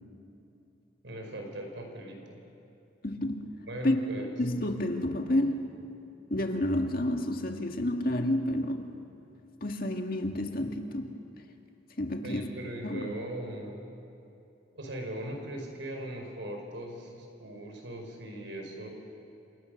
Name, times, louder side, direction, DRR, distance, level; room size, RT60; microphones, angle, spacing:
voice 1, 1.0-2.4 3.7-4.3 12.2-13.8 14.7-18.9, right 1 dB, 75° right, 3 dB, 4.8 m, -39 dB
voice 2, 3.0-5.8 6.3-9.0 9.6-11.1 12.0-12.5 12.8-13.1, left 1 dB, 50° left, 4 dB, 2.0 m, -30 dB
29.5 x 28.0 x 6.6 m, 2.8 s
head